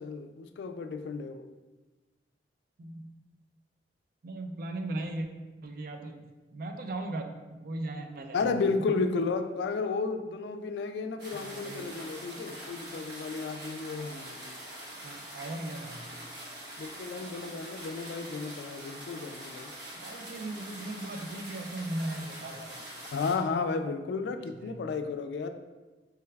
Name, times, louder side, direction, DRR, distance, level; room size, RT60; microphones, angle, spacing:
voice 1, 0.0-1.5 8.3-14.6 16.8-19.7 23.1-25.5, left 4 dB, 70° left, 8 dB, 0.3 m, -33 dB
voice 2, 2.8-3.1 4.2-5.3 5.6-6.2 6.5-8.5 8.8-9.0 11.3-11.9 15.0-16.1 20.0-22.7 24.3-24.8, right 2 dB, 55° right, 5 dB, 0.4 m, -38 dB
sound 1, 11.2-23.4, right 1 dB, 75° right, 1.0 m, -44 dB
4.6 x 2.3 x 3.2 m, 1.2 s
head